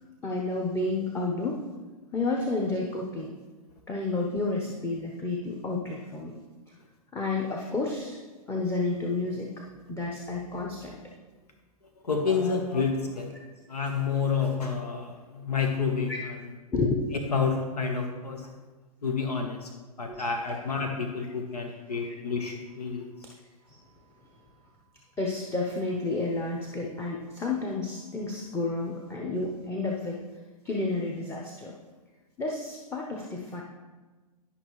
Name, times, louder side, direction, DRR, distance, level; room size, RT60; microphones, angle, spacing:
voice 1, 0.2-1.6 2.1-3.3 3.9-6.4 7.1-8.2 8.5-11.0 16.1-16.2 16.7-17.0 20.1-20.6 22.0-22.1 23.2-23.3 23.7-23.8 25.2-30.2 30.6-31.7 32.4-33.6, left 3 dB, 15° left, -1 dB, 0.9 m, -31 dB
voice 2, 12.0-13.3 13.7-16.1 17.3-18.4 19.0-19.7 20.0-23.0, left 5 dB, 80° left, 3 dB, 1.1 m, -29 dB
11.5 x 5.6 x 3.1 m, 1.3 s
hypercardioid pair, 115°, 20 cm